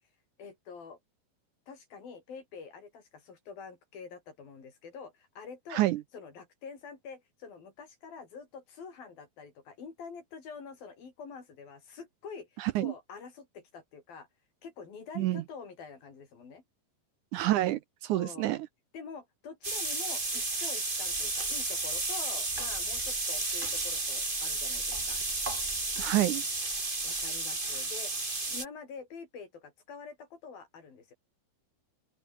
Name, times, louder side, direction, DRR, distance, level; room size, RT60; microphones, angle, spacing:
voice 1, 0.4-1.0 1.7-5.9 6.1-14.3 14.6-16.6 18.1-18.5 18.9-25.2 27.0-31.1, left 5 dB, 90° left, 7.0 m, -46 dB
voice 2, 5.7-6.0 12.6-12.9 15.2-15.4 17.3-18.7 26.0-26.4, right 15 dB, 75° right, 1.9 m, -28 dB
sound 1, 19.6-28.6, right 2 dB, 15° right, 2.6 m, -32 dB
open air
omnidirectional pair, 4.0 m